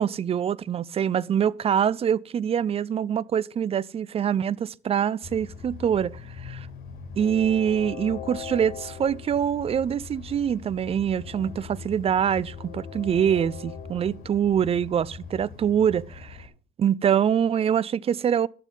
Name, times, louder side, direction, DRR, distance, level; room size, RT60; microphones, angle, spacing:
voice 1, 0.0-6.7 7.2-16.5 16.8-18.5, right 8 dB, 35° right, 0.5 m, -24 dB
Train, 5.2-16.5, left 6 dB, 65° left, 3.5 m, -40 dB
11.5 x 9.2 x 3.8 m
cardioid pair, 110°, 17 cm